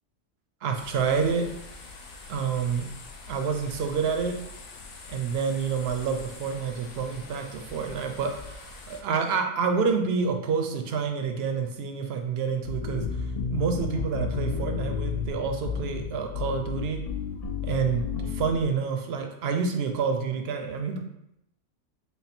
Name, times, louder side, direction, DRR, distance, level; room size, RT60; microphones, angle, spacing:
voice 1, 0.6-1.5 2.3-2.9 3.3-4.4 5.1-8.3 8.9-13.1 13.5-17.0 17.6-21.0, right 5 dB, 65° right, 4 dB, 0.8 m, -28 dB
sound 1, 0.7-9.0, left 3 dB, 80° left, 1.0 m, -44 dB
sound 2, 12.7-18.6, left 6 dB, 55° left, 0.4 m, -32 dB
3.4 x 2.3 x 4.2 m, 0.80 s
omnidirectional pair, 1.2 m